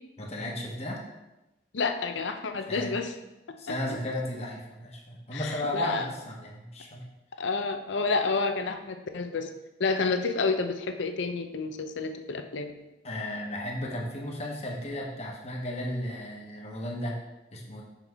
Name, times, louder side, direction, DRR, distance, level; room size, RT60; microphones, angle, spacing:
voice 1, 0.2-1.0 2.7-2.9 3.6-7.0 13.0-17.2 17.5-17.8, left 1 dB, 35° left, -1 dB, 1.1 m, -34 dB
voice 2, 1.7-3.1 3.7-3.8 5.3-5.5 5.7-6.1 7.4-9.5 9.8-12.7, left 4 dB, 80° left, 7 dB, 0.6 m, -29 dB
6.1 x 5.9 x 3.5 m, 0.98 s
head